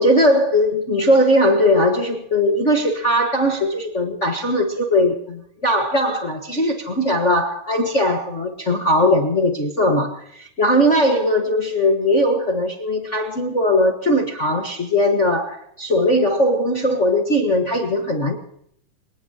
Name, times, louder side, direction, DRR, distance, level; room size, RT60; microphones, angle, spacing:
voice 1, 0.0-18.4, left 1 dB, 40° left, 1.1 m, -19 dB
26.5 x 19.0 x 2.9 m
omnidirectional pair, 3.8 m